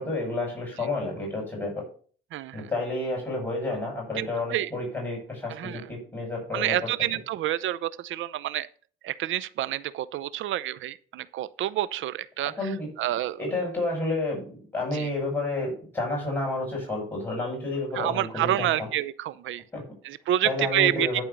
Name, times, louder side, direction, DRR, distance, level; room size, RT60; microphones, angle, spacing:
voice 1, 0.0-1.8 2.5-6.9 12.6-12.9 13.4-14.4 14.7-18.9 19.7-20.1 20.4-21.2, left 2 dB, 15° left, -3 dB, 6.0 m, -30 dB
voice 2, 2.3-2.7 4.2-4.7 5.5-5.8 6.5-8.7 9.0-12.7 13.0-13.4 14.9-15.1 17.9-19.6 20.0-21.1, right 13 dB, 75° right, 17 dB, 0.7 m, -28 dB
11.0 x 4.5 x 6.9 m, 0.43 s
cardioid pair, 90°, 20 cm